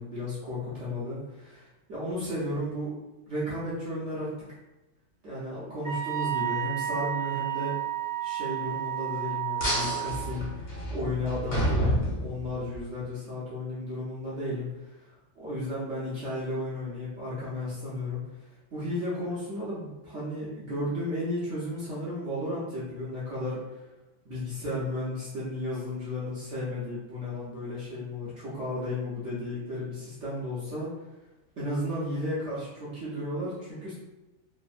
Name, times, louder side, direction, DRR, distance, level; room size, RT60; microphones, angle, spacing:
voice 1, 0.0-2.9 3.3-4.3 5.2-7.8 8.2-23.8 24.2-30.9 31.6-33.9, left 1 dB, 70° right, -9 dB, 0.7 m, -34 dB
Wind instrument woodwind instrument, 5.8-10.2, right 12 dB, 50° right, 1.0 m, -31 dB
sound 1, 9.6-12.8, equal, 75° left, 0.6 m, -29 dB
3.4 x 2.1 x 2.4 m, 1.0 s
omnidirectional pair, 2.2 m